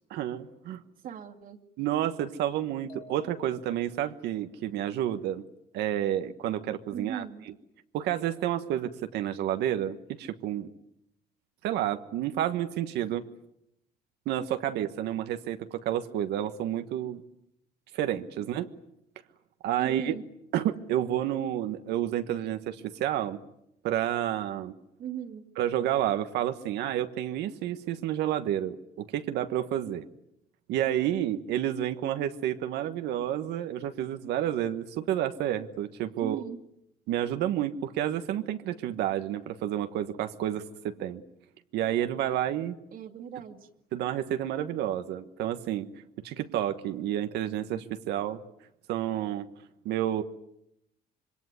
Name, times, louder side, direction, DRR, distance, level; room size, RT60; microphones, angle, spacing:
voice 1, 0.1-0.8 1.8-5.4 5.7-7.2 7.9-10.7 11.6-13.2 14.3-17.2 17.9-18.7 19.6-20.1 20.5-23.4 23.8-24.7 25.6-30.1 30.7-36.4 37.1-41.2 41.7-42.8 43.9-45.9 46.2-48.4 48.9-49.5 49.8-50.2, right 11 dB, 80° right, 8 dB, 1.3 m, -30 dB
voice 2, 1.0-1.6 6.9-7.5 18.3-18.4 19.8-20.2 25.0-25.5 36.2-36.6 42.9-43.7, right 8 dB, 55° right, 3 dB, 2.4 m, -38 dB
sound 1, 2.9-4.1, left 2 dB, 35° left, 4.4 m, -52 dB
26.5 x 22.0 x 9.6 m, 0.80 s
cardioid pair, 110°, 17 cm